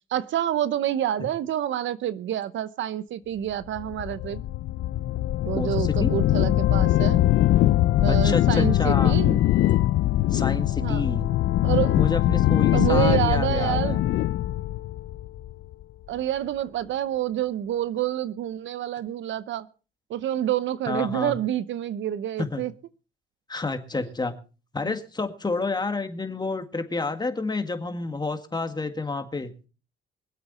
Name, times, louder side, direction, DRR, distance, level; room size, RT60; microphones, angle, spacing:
voice 1, 0.1-4.4 5.4-7.2 8.0-9.4 10.8-11.0 11.6-12.0 12.7-14.0 16.1-19.7 20.1-22.7 24.8-24.9, right 11 dB, 75° right, 0.8 m, -27 dB
sound 1, 3.8-15.8, left 14 dB, 75° left, 0.5 m, -22 dB
voice 2, 5.5-6.1 8.1-9.2 10.3-11.3 11.9-14.1 20.9-21.4 22.4-22.6 23.5-24.3 24.7-29.5, left 3 dB, 20° left, 1.9 m, -29 dB
23.5 x 8.1 x 4.2 m
cardioid pair, 90°, 20 cm